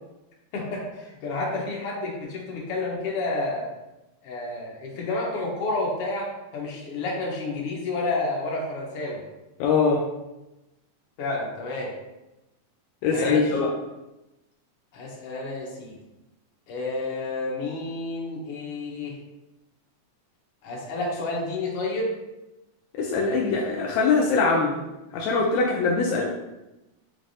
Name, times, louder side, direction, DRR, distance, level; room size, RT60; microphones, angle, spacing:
voice 1, 0.5-3.7 4.2-9.2 11.2-11.9 13.1-13.5 14.9-15.9 16.7-19.1 20.6-22.1, left 2 dB, 65° left, -2 dB, 1.5 m, -30 dB
voice 2, 9.6-10.0 13.0-13.7 23.0-24.8 25.1-26.3, left 4 dB, 85° left, -1 dB, 1.5 m, -22 dB
5.6 x 3.3 x 2.6 m, 0.99 s
omnidirectional pair, 3.7 m